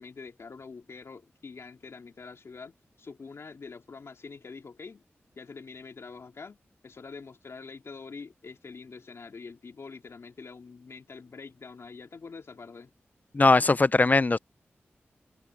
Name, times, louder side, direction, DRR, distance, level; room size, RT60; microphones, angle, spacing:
voice 1, 0.0-5.0 5.4-6.6 6.8-12.9, left 4 dB, 70° left, 2.7 m, -45 dB
voice 2, 13.3-14.4, left 3 dB, 35° left, 0.5 m, -20 dB
open air
cardioid pair, 45°, 5 cm